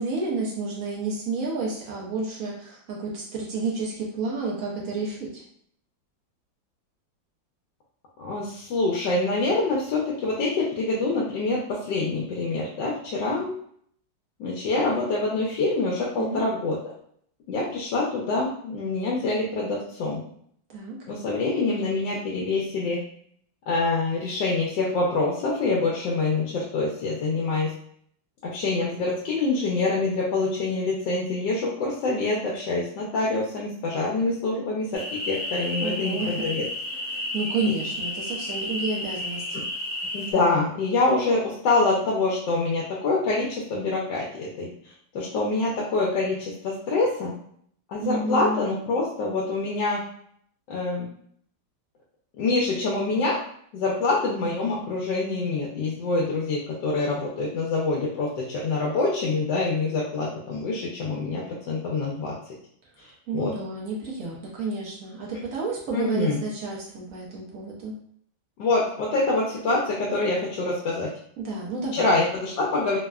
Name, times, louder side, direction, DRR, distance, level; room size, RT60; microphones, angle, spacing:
voice 1, 0.0-5.4 16.2-16.4 20.7-21.0 35.8-36.4 36.9-39.7 48.0-48.6 63.3-67.9 71.4-72.1, right 3 dB, 65° right, -3 dB, 0.8 m, -30 dB
voice 2, 8.2-13.5 14.4-16.8 17.5-20.2 21.1-23.0 23.7-27.7 28.4-36.7 40.1-47.3 47.9-50.0 50.7-51.1 52.4-53.4 53.7-62.4 63.3-63.5 65.9-66.4 68.6-71.1 71.9-73.0, left 3 dB, 75° left, -4 dB, 1.2 m, -25 dB
sound 1, 34.9-40.3, left 1 dB, 50° left, 0.9 m, -32 dB
3.4 x 2.1 x 2.3 m, 0.64 s
omnidirectional pair, 2.0 m